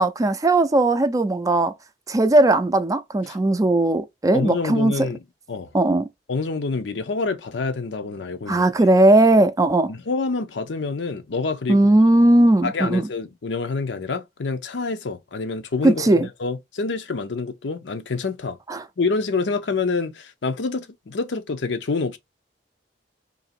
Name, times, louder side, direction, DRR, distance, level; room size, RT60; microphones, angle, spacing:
voice 1, 0.0-1.7 2.1-5.1 5.7-6.0 8.5-9.9 11.7-13.1 15.8-16.3 18.7-18.8, right 2 dB, 20° right, 0.4 m, -18 dB
voice 2, 4.3-5.2 5.5-5.7 6.3-8.9 9.9-11.9 12.6-18.6 19.0-22.2, left 4 dB, 85° left, 0.6 m, -27 dB
2.9 x 2.7 x 4.1 m
head